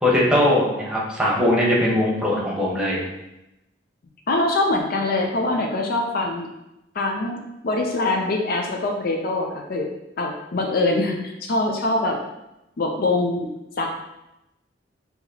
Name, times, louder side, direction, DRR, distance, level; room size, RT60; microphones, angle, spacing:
voice 1, 0.0-3.0, left 1 dB, 5° right, -5 dB, 1.0 m, -20 dB
voice 2, 4.3-6.5 7.0-9.9 10.2-12.2 12.8-13.5 13.8-13.9, left 2 dB, 55° left, 2 dB, 0.5 m, -23 dB
5.6 x 2.9 x 2.8 m, 0.92 s
head